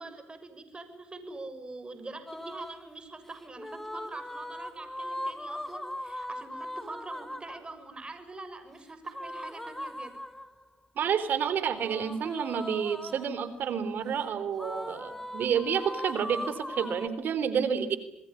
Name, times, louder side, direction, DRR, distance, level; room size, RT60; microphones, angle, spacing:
voice 1, 0.0-10.2, right 3 dB, 30° right, 9 dB, 6.5 m, -44 dB
sound 1, 2.3-2.9 3.6-7.7 9.1-10.6 11.8-13.5 14.6-17.1, left 1 dB, 10° left, 2.6 m, -39 dB
voice 2, 11.0-18.0, right 7 dB, 70° right, 13 dB, 3.6 m, -29 dB
28.0 x 20.0 x 9.9 m, 0.79 s
supercardioid pair, 60°, 3 cm